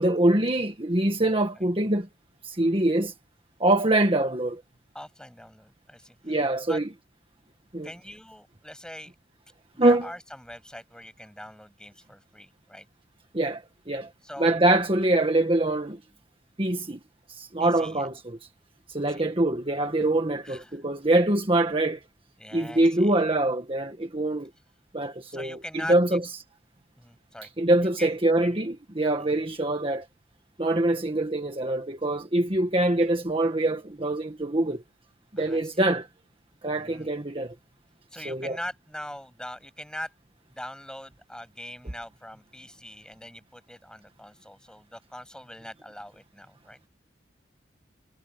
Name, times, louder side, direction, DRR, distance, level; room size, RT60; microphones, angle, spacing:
voice 1, 0.0-2.1 2.4-3.1 3.6-4.6 6.2-6.9 7.7-7.9 9.8-10.1 13.3-13.6 13.9-14.1 14.4-16.0 16.6-17.0 17.3-18.4 18.9-22.0 22.5-24.5 24.9-25.6 25.9-26.2 27.6-30.0 30.6-34.8 35.3-36.1 36.6-37.5 38.2-38.6, right 1 dB, 30° right, 1.6 m, -24 dB
voice 2, 4.9-6.4 6.7-6.8 7.8-9.1 9.7-12.9 14.2-14.6 17.6-18.1 19.0-19.3 20.4-20.8 22.4-23.2 25.3-25.9 27.0-27.5 27.8-28.2 29.3-29.5 35.4-35.9 36.7-37.1 38.1-40.1 40.5-46.8, left 1 dB, 5° left, 7.9 m, -42 dB
head